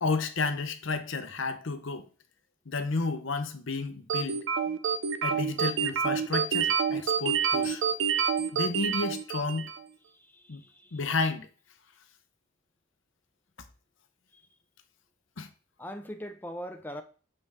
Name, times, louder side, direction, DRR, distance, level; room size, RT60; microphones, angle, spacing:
voice 1, 0.0-2.1 2.7-4.4 5.2-7.8 8.5-9.7 10.5-10.6 10.9-11.5 15.4-15.5, left 3 dB, 80° left, 0.8 m, -31 dB
sound 1, 4.1-9.8, right 7 dB, 80° right, 0.6 m, -28 dB
voice 2, 10.1-11.0 14.3-14.4 15.8-17.0, equal, 10° left, 0.5 m, -41 dB
6.9 x 5.4 x 3.5 m
head